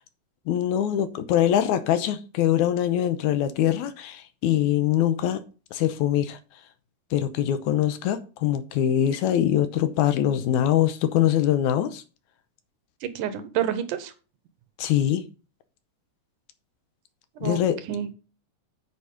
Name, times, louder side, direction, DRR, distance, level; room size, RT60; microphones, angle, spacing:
voice 1, 0.5-5.4 5.7-6.4 7.1-12.0 14.8-15.3 17.4-17.8, left 11 dB, 75° left, 2.1 m, -23 dB
voice 2, 13.0-14.1 17.4-17.6 17.9-18.1, right 10 dB, 80° right, 2.4 m, -28 dB
8.3 x 5.2 x 5.2 m
omnidirectional pair, 3.7 m